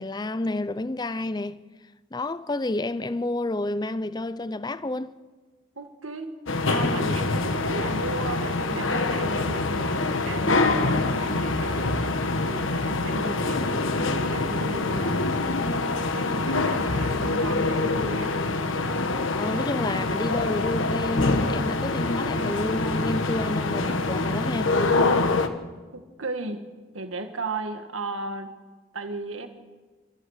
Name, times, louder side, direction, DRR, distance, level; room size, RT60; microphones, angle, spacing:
voice 1, 0.0-1.6 2.1-5.1 19.3-24.8, left 2 dB, 20° left, 0.5 m, -29 dB
voice 2, 5.8-6.4 6.7-12.1 12.5-15.6 16.1-18.4 25.4-25.6 25.9-26.7 26.9-28.5 28.9-29.5, right 2 dB, 80° right, 1.8 m, -35 dB
sound 1, 6.5-25.5, left 3 dB, 75° left, 1.4 m, -25 dB
28.0 x 14.5 x 6.6 m
head